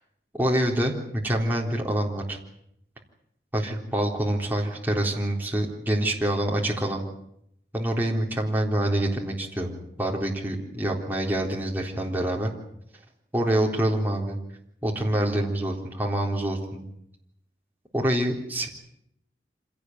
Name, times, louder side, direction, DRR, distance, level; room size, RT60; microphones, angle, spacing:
voice 1, 0.3-0.9 1.2-2.4 3.5-7.0 7.7-12.5 13.3-14.4 14.8-16.9 17.9-18.7, right 1 dB, 10° right, -1 dB, 3.8 m, -26 dB
26.0 x 17.5 x 9.4 m, 0.78 s
head